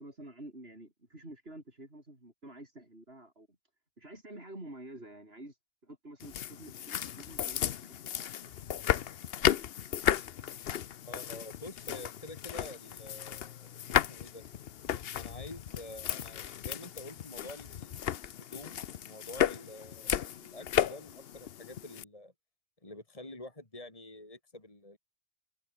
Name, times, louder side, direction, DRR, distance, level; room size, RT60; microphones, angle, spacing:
voice 1, 0.0-3.6 4.0-7.7 8.1-8.5 9.3-9.5, right 1 dB, 65° right, 7.1 m, -49 dB
sound 1, 6.2-22.0, left 10 dB, 65° left, 0.9 m, -34 dB
voice 2, 11.1-14.4 15.1-22.3 22.8-25.0, left 1 dB, 30° left, 3.0 m, -48 dB
omnidirectional pair, 1.1 m